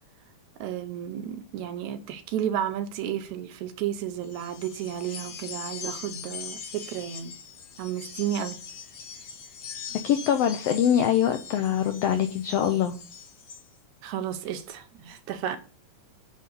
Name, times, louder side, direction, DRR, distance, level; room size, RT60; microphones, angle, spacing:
voice 1, 0.6-7.3 7.8-8.6 14.0-15.6, right 10 dB, 75° right, 2.0 m, -32 dB
sound 1, 4.2-13.7, left 6 dB, 65° left, 1.3 m, -41 dB
voice 2, 10.0-13.0, left 9 dB, 90° left, 1.4 m, -23 dB
9.2 x 3.8 x 6.7 m
omnidirectional pair, 3.5 m